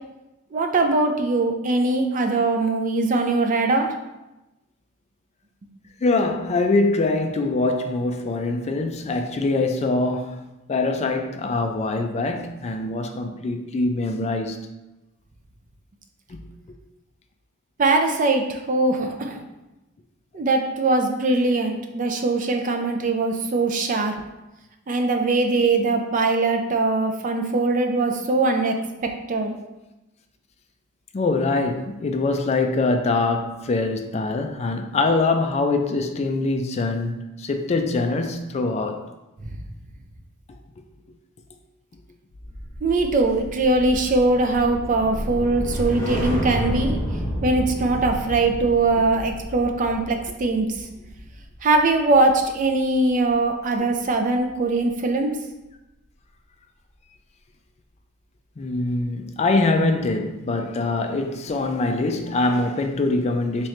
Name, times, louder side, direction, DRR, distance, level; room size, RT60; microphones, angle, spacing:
voice 1, 0.5-3.9 17.8-19.4 20.3-24.2 24.9-29.6 39.5-39.6 42.8-47.0 47.4-50.7 51.6-55.3, right 2 dB, 40° right, 0.4 m, -21 dB
voice 2, 6.0-10.4 10.7-14.6 16.3-16.4 31.1-39.1 50.3-50.4 58.6-63.7, left 3 dB, 30° left, 0.3 m, -23 dB
sound 1, 42.4-52.8 53.1-53.5, equal, 15° left, 1.1 m, -31 dB
3.6 x 3.0 x 3.2 m
head